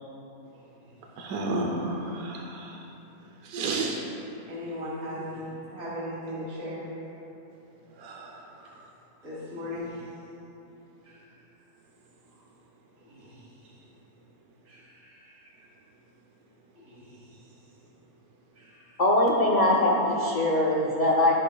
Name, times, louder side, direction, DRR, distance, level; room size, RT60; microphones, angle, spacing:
voice 1, 1.2-2.9 3.4-4.0 7.9-8.9, right 2 dB, 75° right, 0 dB, 1.1 m, -32 dB
voice 2, 4.5-6.8 9.2-9.9 11.0-11.2 13.1-13.3 14.6-15.4 16.8-17.1, left 1 dB, 50° right, -8 dB, 1.8 m, -37 dB
voice 3, 19.0-21.3, left 1 dB, 65° left, -3 dB, 0.4 m, -22 dB
14.0 x 5.0 x 2.2 m, 3.0 s
omnidirectional pair, 1.6 m